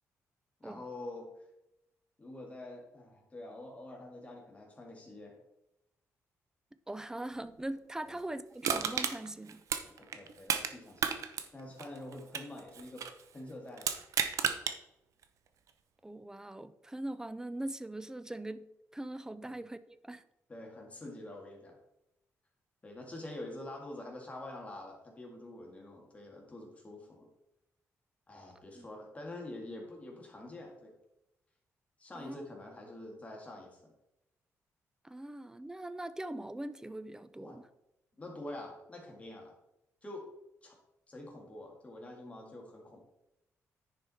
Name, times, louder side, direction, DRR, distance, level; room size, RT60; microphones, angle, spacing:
voice 1, 0.6-1.3 2.2-5.4 8.0-8.2 9.8-11.2 11.5-14.0 19.4-19.5 20.5-21.8 22.8-27.3 28.3-30.9 32.0-33.9 37.4-37.6 38.2-39.5 40.0-40.3 40.6-40.8 41.1-43.0, left 1 dB, 25° left, 1 dB, 2.1 m, -46 dB
voice 2, 6.9-9.6 16.0-18.7 18.9-20.2 28.7-28.9 32.1-32.5 35.0-37.7, right 1 dB, 10° right, 13 dB, 0.5 m, -41 dB
Crushing, 8.6-10.7 11.0-13.2 13.8-14.8 15.2-15.3, right 7 dB, 70° right, 0.8 m, -33 dB
10.0 x 5.0 x 4.2 m, 0.85 s
cardioid pair, 110°, 6 cm